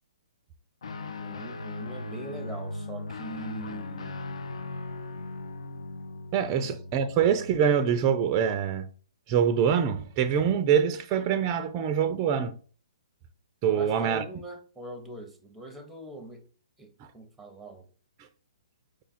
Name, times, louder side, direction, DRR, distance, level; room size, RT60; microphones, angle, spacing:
Guitar, 0.8-8.5, left 2 dB, 80° left, 0.6 m, -39 dB
voice 1, 1.2-4.4 6.5-6.7 13.8-16.4 16.8-17.9, right 2 dB, ahead, 0.8 m, -42 dB
voice 2, 6.3-8.9 9.3-12.6 13.6-14.2, right 8 dB, 30° right, 0.4 m, -24 dB
4.8 x 2.3 x 4.1 m
hypercardioid pair, 140°, 3 cm